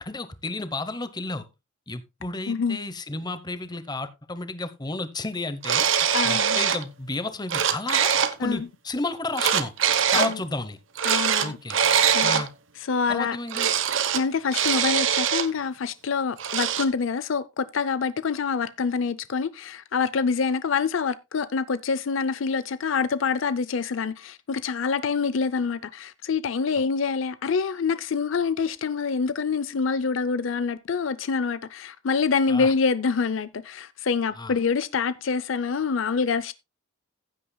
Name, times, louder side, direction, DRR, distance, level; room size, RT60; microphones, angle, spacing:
voice 1, 0.0-1.5 1.9-8.1 8.4-9.7 10.1-10.8 11.4-11.8 12.2-12.5 13.1-13.7 32.5-32.7 34.4-34.5, left 2 dB, 20° left, 0.9 m, -32 dB
voice 2, 2.5-2.8 6.1-6.6 8.4-8.7 10.1-10.4 11.0-11.6 12.1-12.4 12.9-13.4 14.1-36.5, left 5 dB, 65° left, 0.5 m, -26 dB
sound 1, 5.6-6.8 7.3-8.3 9.4-10.3 11.0-12.5 13.5-14.2 14.5-15.5 16.4-16.9, right 8 dB, 65° right, 1.0 m, -22 dB
15.0 x 8.6 x 2.3 m
head